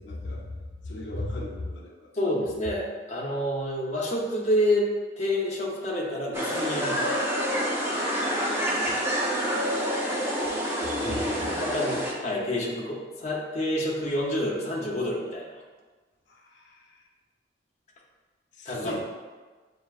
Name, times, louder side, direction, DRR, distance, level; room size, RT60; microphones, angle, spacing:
voice 1, 0.0-2.1 8.8-9.0 11.0-11.7 16.3-17.1 18.5-19.0, left 1 dB, 75° left, -1 dB, 0.6 m, -36 dB
voice 2, 2.1-4.9 5.2-7.2 11.5-15.6 18.7-19.0, left 1 dB, 35° left, -3 dB, 0.7 m, -28 dB
sound 1, 6.3-12.1, equal, 15° right, 0.5 m, -27 dB
6.8 x 2.7 x 2.4 m, 1.3 s
head